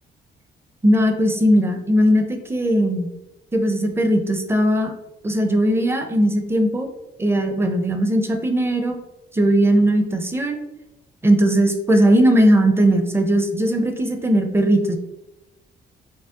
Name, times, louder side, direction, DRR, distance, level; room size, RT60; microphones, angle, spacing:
voice 1, 0.8-3.1 3.5-4.9 5.2-6.9 7.2-9.0 9.3-10.6 11.2-15.0, right 1 dB, 10° right, 5 dB, 0.6 m, -18 dB
5.9 x 2.0 x 2.8 m, 0.92 s
cardioid pair, 90°, 20 cm